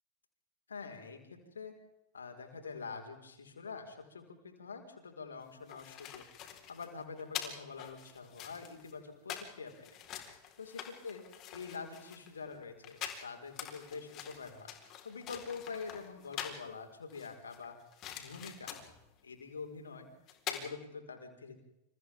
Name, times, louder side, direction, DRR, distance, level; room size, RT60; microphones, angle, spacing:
voice 1, 0.7-1.7 2.1-6.2 6.7-10.0 10.6-11.2 11.5-14.7 15.0-17.8 18.1-18.7 19.2-20.1 20.5-21.6, left 5 dB, 70° left, 4 dB, 4.6 m, -45 dB
sound 1, 5.4-16.7 17.1-19.0 20.0-20.1 20.3-20.6, left 10 dB, 35° left, 4.2 m, -45 dB
29.5 x 29.0 x 3.6 m, 0.92 s
figure-of-eight pair, 90°, 0 cm